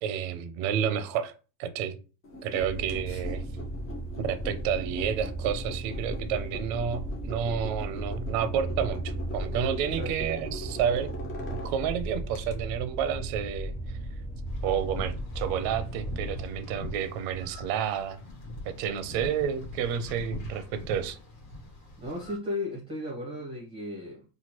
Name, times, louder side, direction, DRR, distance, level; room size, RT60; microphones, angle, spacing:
voice 1, 0.0-1.3 1.6-2.0 2.4-3.4 4.2-11.1 11.5-13.7 14.6-18.2 18.6-21.2, right 8 dB, 55° right, 0.5 m, -30 dB
sound 1, 2.2-12.6, equal, 25° left, 0.5 m, -42 dB
sound 2, 2.6-16.4, right 1 dB, 55° left, 1.1 m, -36 dB
voice 2, 9.8-10.3 22.0-24.2, left 1 dB, 10° right, 0.7 m, -35 dB
sound 3, 14.4-22.4, left 2 dB, 75° left, 1.3 m, -42 dB
2.9 x 2.3 x 2.9 m
cardioid pair, 150°, 48 cm